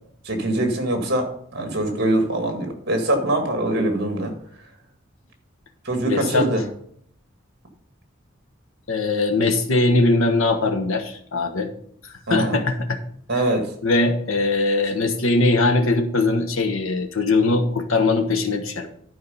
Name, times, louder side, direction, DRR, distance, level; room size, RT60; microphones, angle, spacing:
voice 1, 0.2-4.3 5.8-6.6 12.3-12.6 13.3-13.7, right 1 dB, 55° right, 4 dB, 2.0 m, -23 dB
voice 2, 6.0-6.5 8.9-11.7 12.3-13.0 13.8-18.9, left 2 dB, 80° left, 5 dB, 1.2 m, -21 dB
11.0 x 4.7 x 5.5 m, 0.65 s
head